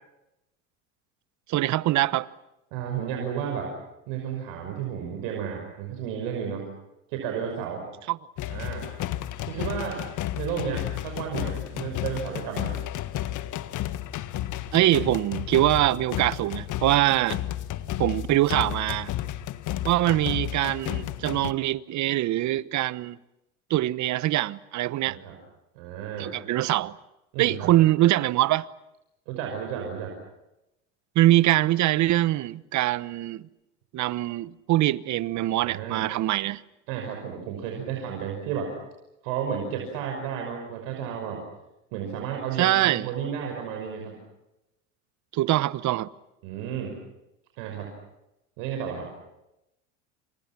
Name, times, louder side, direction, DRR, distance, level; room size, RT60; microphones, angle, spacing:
voice 1, 1.5-2.3 8.1-8.2 9.6-9.7 14.7-17.4 18.0-19.1 19.8-23.2 23.7-25.2 26.2-27.0 27.4-28.7 31.1-33.5 33.9-36.6 42.6-43.1 45.3-46.1, right 15 dB, 50° right, 1.0 m, -23 dB
voice 2, 2.7-3.7 4.1-6.6 7.1-7.8 8.5-8.9 9.4-10.0 10.4-12.8 25.0-25.4 25.7-26.3 27.3-27.7 29.3-30.1 35.6-36.0 36.9-38.7 39.2-41.4 41.9-44.2 46.4-46.9 47.6-47.9 48.6-49.1, right 8 dB, 70° right, 5.9 m, -32 dB
sound 1, 8.4-21.5, left 13 dB, 50° left, 1.6 m, -32 dB
30.0 x 27.0 x 6.0 m
hypercardioid pair, 90°, 38 cm